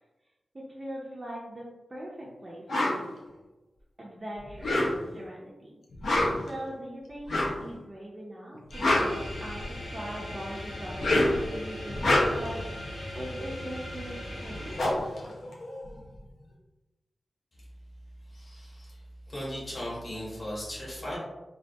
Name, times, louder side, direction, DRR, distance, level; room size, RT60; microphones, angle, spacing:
voice 1, 0.5-3.0 4.0-5.8 6.5-14.8, equal, 25° right, -4 dB, 0.4 m, -41 dB
sound 1, 2.7-3.0 4.5-5.2 5.9-6.5 7.3-7.6 8.6-9.8 10.8-11.5 11.9-12.6 14.1-14.2 14.4-16.1, left 1 dB, 85° left, 0.4 m, -26 dB
sound 2, 8.7-14.8, left 1 dB, 65° left, 0.8 m, -39 dB
voice 2, 18.3-18.9 19.3-21.2, equal, 35° left, -7 dB, 0.8 m, -37 dB
2.2 x 2.1 x 2.6 m, 1.1 s
wide cardioid pair, 135°, 0 cm